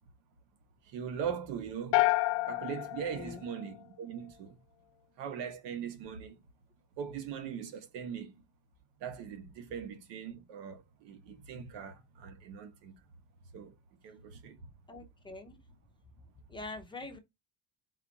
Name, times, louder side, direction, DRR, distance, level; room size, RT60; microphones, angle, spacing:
voice 1, 0.9-2.0 2.4-4.6 5.2-6.4 7.0-8.4 9.0-13.0 13.5-13.7 14.0-14.6, right 7 dB, 90° right, 1.2 m, -40 dB
sound 1, 1.9-4.2, left 19 dB, 70° left, 0.6 m, -30 dB
voice 2, 3.1-3.4 14.9-15.6 16.5-17.2, left 3 dB, 10° left, 0.6 m, -44 dB
4.5 x 2.4 x 4.0 m
cardioid pair, 170°, 42 cm